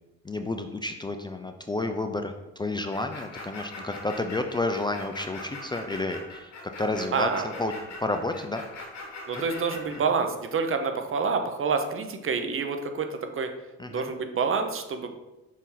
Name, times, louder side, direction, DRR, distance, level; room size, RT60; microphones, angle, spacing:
voice 1, 0.2-6.5 6.8-7.7 8.0-8.6 9.3-9.8 13.8-14.1, left 2 dB, 15° left, 6 dB, 0.4 m, -31 dB
sound 1, 2.9-10.0, left 2 dB, 65° left, 1.7 m, -41 dB
voice 2, 7.1-7.5 9.3-13.5 13.9-15.1, right 5 dB, 45° right, 6 dB, 0.8 m, -27 dB
6.0 x 4.2 x 3.9 m, 1.0 s
cardioid pair, 90°, 30 cm